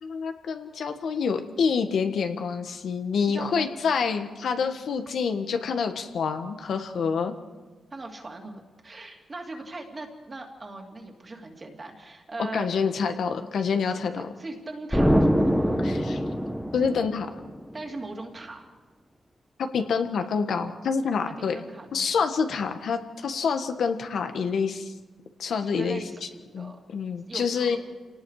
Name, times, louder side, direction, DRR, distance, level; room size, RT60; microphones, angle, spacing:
voice 1, 0.0-7.3 12.5-14.3 15.8-16.2 16.7-17.3 19.6-21.5 21.9-24.9 25.4-26.0 26.5-27.8, left 5 dB, 60° left, 6 dB, 1.5 m, -27 dB
voice 2, 3.3-4.1 7.9-12.8 14.1-15.9 17.7-18.6 21.4-22.1 25.6-26.8 27.3-27.8, right 2 dB, 25° right, 2 dB, 2.7 m, -40 dB
Explosion, 14.9-17.6, equal, ahead, 1.3 m, -23 dB
28.5 x 18.5 x 4.9 m, 1.3 s
wide cardioid pair, 155°, 0 cm